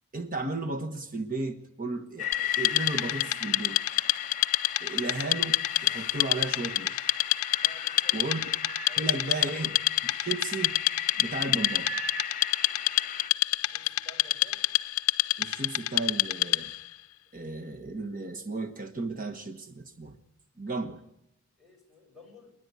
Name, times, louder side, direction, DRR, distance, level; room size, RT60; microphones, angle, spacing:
voice 1, 0.1-3.8 4.8-7.0 8.1-8.4 9.0-9.7 10.0-10.8 11.2-11.9 15.4-16.7 17.3-20.2 20.6-21.0, right 3 dB, 40° right, 1.4 m, -34 dB
sound 1, 2.2-13.3, left 7 dB, 35° left, 1.7 m, -36 dB
Wood, 2.3-16.9, left 15 dB, 75° left, 0.7 m, -28 dB
voice 2, 7.6-8.3 8.9-9.6 13.5-14.6 21.6-22.5, left 1 dB, ahead, 6.3 m, -53 dB
29.0 x 10.5 x 9.5 m
head